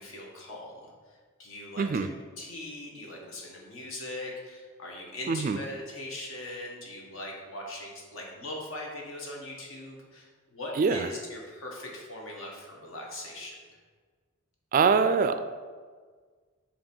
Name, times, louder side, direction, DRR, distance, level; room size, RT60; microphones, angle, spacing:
voice 1, 0.0-2.1 2.4-13.8, left 1 dB, 70° left, -1 dB, 1.4 m, -41 dB
voice 2, 1.8-2.1 5.3-5.6 10.8-11.1 14.7-15.4, right 5 dB, 40° right, 10 dB, 0.3 m, -24 dB
7.2 x 2.9 x 5.3 m, 1.6 s
head